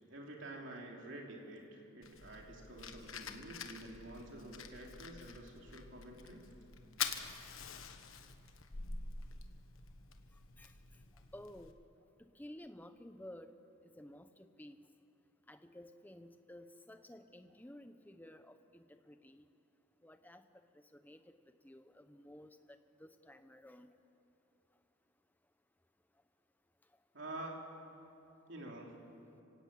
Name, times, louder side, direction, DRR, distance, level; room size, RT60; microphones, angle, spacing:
voice 1, 0.1-6.5 27.1-27.6 28.5-28.9, right 1 dB, 60° right, 0 dB, 3.4 m, -49 dB
Fire, 2.0-11.7, left 6 dB, 70° left, 1.4 m, -46 dB
voice 2, 11.3-11.7 12.3-13.6 13.8-14.8 15.5-19.4 20.0-20.4 20.9-21.4 21.6-23.9, left 1 dB, 10° left, 9 dB, 0.8 m, -54 dB
26.5 x 17.0 x 8.6 m, 2.7 s
head